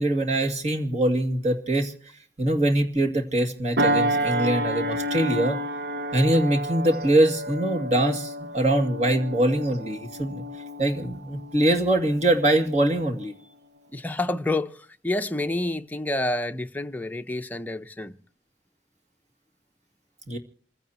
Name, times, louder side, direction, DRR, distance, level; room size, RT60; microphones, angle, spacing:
voice 1, 0.0-5.6 6.1-10.4 10.8-13.3 20.3-20.4, right 1 dB, 40° right, 2.3 m, -23 dB
sound 1, 3.8-12.6 13.1-13.3, right 1 dB, 60° right, 0.9 m, -30 dB
voice 2, 13.9-18.2, left 2 dB, 10° left, 0.7 m, -28 dB
28.0 x 16.0 x 2.9 m
head